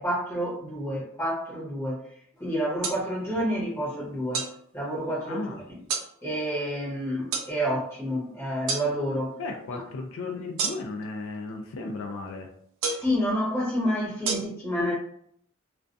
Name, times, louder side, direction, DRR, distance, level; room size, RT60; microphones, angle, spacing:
voice 1, 0.0-2.0 2.4-4.5 4.7-5.5 6.2-9.4 13.0-14.9, equal, 15° left, 1.0 m, -29 dB
sound 1, 2.8-3.0 4.3-4.5 5.9-6.1 7.3-7.5 8.7-8.9 10.6-11.0 12.8-13.1 14.3-14.4, right 5 dB, 80° right, 0.4 m, -28 dB
voice 2, 5.3-5.6 9.3-12.5, left 3 dB, 80° left, 0.4 m, -35 dB
2.3 x 2.2 x 2.5 m
head